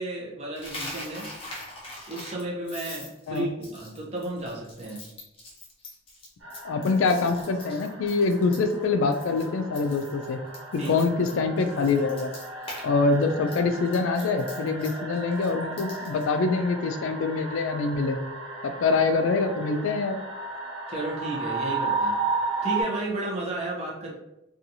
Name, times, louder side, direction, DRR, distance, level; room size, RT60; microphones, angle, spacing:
voice 1, 0.0-1.3 2.1-5.0 10.8-10.9 20.9-22.2 22.6-24.2, right 2 dB, 30° right, -4 dB, 0.6 m, -33 dB
Coin (dropping), 0.6-8.8 9.1-9.4 9.7-12.9 13.1-16.3, left 1 dB, 25° left, 0.7 m, -42 dB
sound 1, 6.4-22.8, right 3 dB, 80° right, 0.7 m, -35 dB
voice 2, 6.6-10.4 10.7-12.3 12.8-18.2 18.6-20.2, left 4 dB, 70° left, 7 dB, 0.3 m, -25 dB
2.7 x 2.3 x 2.6 m, 0.93 s
head